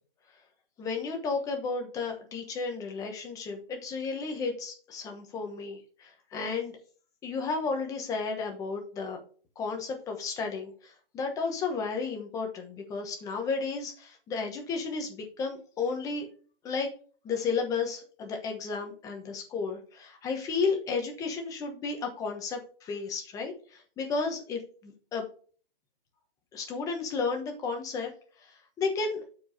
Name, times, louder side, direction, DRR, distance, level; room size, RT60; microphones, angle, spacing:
voice 1, 0.8-6.7 7.2-9.2 9.6-16.3 16.6-16.9 17.2-25.2 26.5-28.1 28.4-29.2, left 4 dB, 10° left, 3 dB, 1.0 m, -33 dB
12.0 x 4.7 x 2.7 m, 0.41 s
hypercardioid pair, 150°, 29 cm